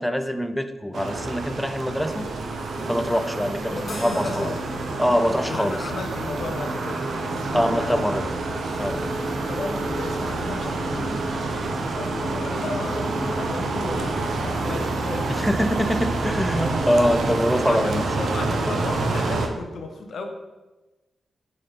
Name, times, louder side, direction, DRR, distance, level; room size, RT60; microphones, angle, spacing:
voice 1, 0.0-2.3 2.9-4.5 5.0-5.9 7.5-8.2 8.8-9.0 15.3-18.0, equal, ahead, 8 dB, 0.4 m, -24 dB
sound 1, 0.9-19.5, right 2 dB, 70° right, 0.8 m, -28 dB
sound 2, 2.1-17.6, right 1 dB, 30° right, 2.0 m, -41 dB
voice 2, 3.4-4.8 5.4-8.1 9.4-11.3 11.9-15.4 16.9-20.2, left 3 dB, 65° left, 4 dB, 0.9 m, -34 dB
sound 3, 3.8-12.3, left 2 dB, 40° left, 2.0 m, -48 dB
8.8 x 4.4 x 3.6 m, 1.1 s
wide cardioid pair, 135°, 0 cm